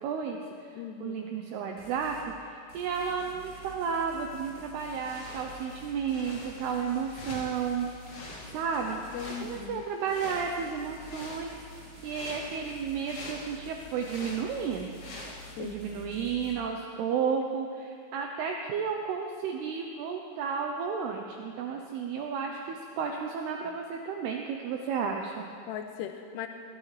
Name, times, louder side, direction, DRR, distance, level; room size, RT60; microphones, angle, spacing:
voice 1, 0.0-0.7 1.0-2.2 2.4-7.9 8.2-9.0 9.4-11.6 12.0-14.9 15.6-25.5, right 6 dB, 80° right, 2 dB, 2.4 m, -32 dB
voice 2, 0.8-1.2 9.1-9.8 15.6-15.8 25.7-26.5, left 9 dB, 85° left, 5 dB, 2.5 m, -38 dB
sound 1, 1.8-2.3 2.7-9.7 10.1-16.5, equal, 30° right, 2.7 m, -49 dB
sound 2, 4.8-15.6, left 2 dB, 55° left, 4.4 m, -46 dB
21.0 x 15.0 x 3.3 m, 2.4 s
omnidirectional pair, 5.4 m